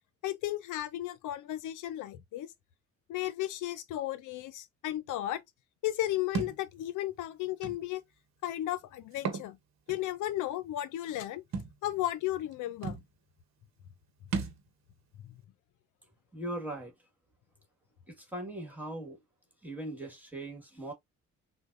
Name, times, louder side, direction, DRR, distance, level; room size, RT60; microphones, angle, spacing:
voice 1, 0.2-2.5 3.1-5.4 5.8-8.0 8.4-9.6 9.9-11.4 11.8-13.0, left 14 dB, 85° left, 0.6 m, -34 dB
Thump thud, 6.3-6.6 7.6-7.8 9.1-9.5 9.9-10.0 11.5-11.7 12.5-12.6 12.8-13.1 14.3-14.6, right 5 dB, 60° right, 1.0 m, -34 dB
voice 2, 16.3-16.9 18.1-19.2 19.6-20.9, right 1 dB, 5° right, 1.6 m, -39 dB
3.9 x 2.2 x 2.4 m
cardioid pair, 90°, 30 cm